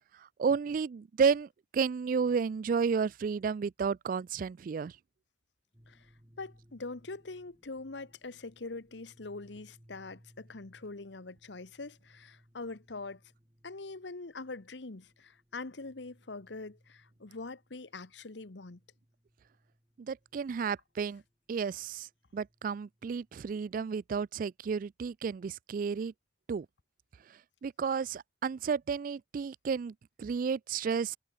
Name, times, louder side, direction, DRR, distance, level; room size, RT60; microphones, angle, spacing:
voice 1, 0.4-4.9 20.0-21.2 21.5-22.1 22.3-26.1 26.5-26.7 27.6-31.2, right 6 dB, 50° right, 0.3 m, -32 dB
sound 1, 5.7-24.0, equal, 20° right, 4.1 m, -65 dB
voice 2, 6.4-13.2 13.6-18.8, left 3 dB, 80° left, 1.2 m, -43 dB
head